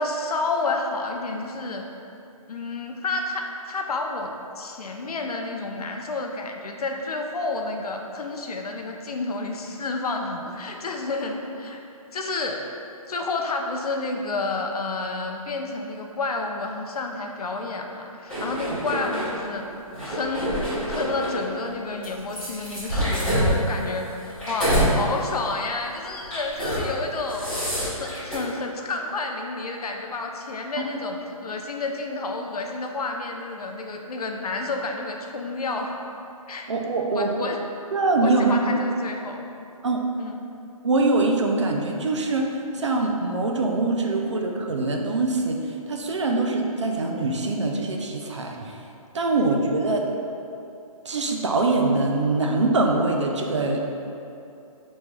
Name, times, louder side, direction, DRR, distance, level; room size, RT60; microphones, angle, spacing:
voice 1, 0.0-1.9 2.5-11.8 12.1-12.6 13.1-19.7 20.1-20.5 20.9-36.0 36.5-36.7 37.1-37.6 38.2-39.4 40.2-40.4, left 3 dB, 85° left, 3 dB, 0.5 m, -30 dB
sound 1, 18.3-19.3 19.9-21.4 22.0-24.9 25.3-25.6 26.2-26.8 27.1-28.3, equal, 5° left, 0.5 m, -26 dB
voice 2, 36.7-37.3 37.9-38.8 39.8-40.0 40.8-42.5 42.7-45.6 45.9-48.7 49.1-50.0 51.1-53.9, right 2 dB, 50° right, 1 dB, 0.4 m, -23 dB
5.2 x 3.1 x 2.2 m, 2.7 s
hypercardioid pair, 180°, 19 cm